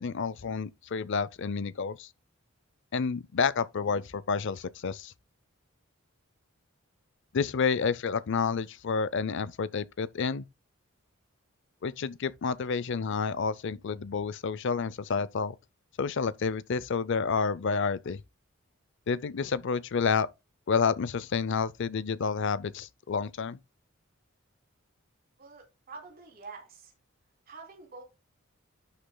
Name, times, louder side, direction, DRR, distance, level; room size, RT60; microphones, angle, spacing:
voice 1, 0.0-2.1 2.9-5.1 7.3-10.5 11.8-15.6 16.0-18.2 19.1-20.3 20.7-23.6, left 5 dB, 60° left, 0.5 m, -29 dB
voice 2, 25.4-26.9 27.5-28.0, right 4 dB, 45° right, 3.1 m, -47 dB
11.5 x 6.5 x 2.2 m
head